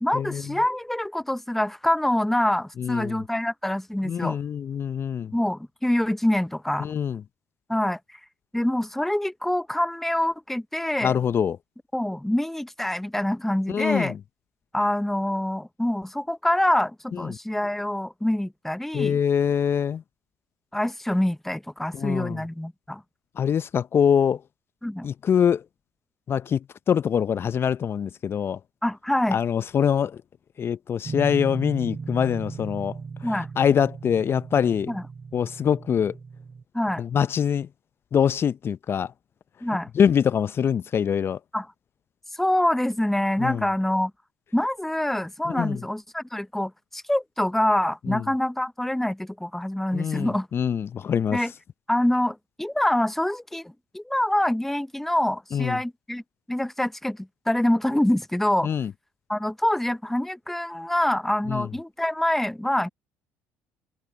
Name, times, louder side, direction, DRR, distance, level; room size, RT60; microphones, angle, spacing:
voice 1, 0.0-4.4 5.3-6.9 7.7-8.0 8.5-11.2 11.9-14.1 14.7-19.2 20.7-23.0 24.8-25.1 28.8-29.4 33.2-33.5 34.9-35.0 36.7-37.0 39.6-39.9 41.5-41.7 42.3-44.1 44.5-50.5 51.3-51.5 51.9-56.2 56.5-58.7 59.3-62.9, left 1 dB, 5° left, 0.8 m, -25 dB
voice 2, 2.8-3.2 4.0-5.3 6.8-7.2 11.0-11.6 13.7-14.2 17.1-17.4 18.9-20.0 21.9-22.4 23.4-24.4 25.0-25.6 26.3-28.6 29.3-30.2 30.6-33.0 33.6-34.9 35.3-36.1 37.0-37.7 38.1-39.1 39.9-41.4 43.4-43.7 45.5-45.8 48.1-48.2 49.9-51.4 55.5-55.8 58.6-58.9 61.5-61.7, left 8 dB, 40° left, 0.6 m, -24 dB
sound 1, 31.0-36.6, right 5 dB, 30° right, 7.0 m, -37 dB
hypercardioid pair, 70°, 6 cm